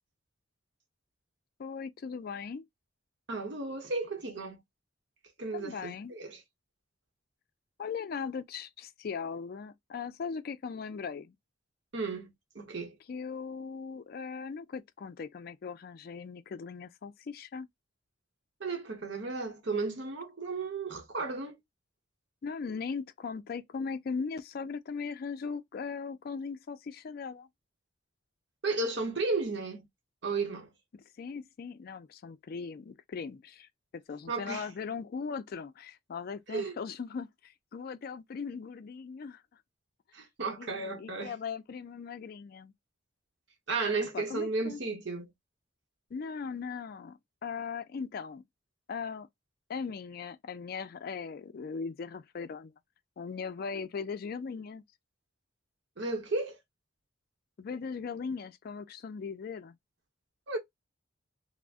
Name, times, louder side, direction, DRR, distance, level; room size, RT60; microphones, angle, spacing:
voice 1, 1.6-2.6 5.5-6.1 7.8-11.3 13.1-17.7 22.4-27.5 30.9-39.4 40.6-42.7 44.1-44.8 46.1-48.4 48.9-49.3 49.7-52.7 53.2-54.8 57.6-59.8, left 5 dB, 50° left, 0.3 m, -39 dB
voice 2, 3.3-4.6 5.4-6.4 11.9-12.3 12.5-13.0 18.6-21.6 28.6-29.8 30.2-30.7 34.3-34.7 36.5-36.7 40.1-41.3 43.7-45.3 56.0-56.6 60.5-60.6, right 3 dB, 60° right, 0.9 m, -34 dB
2.4 x 2.0 x 3.4 m
head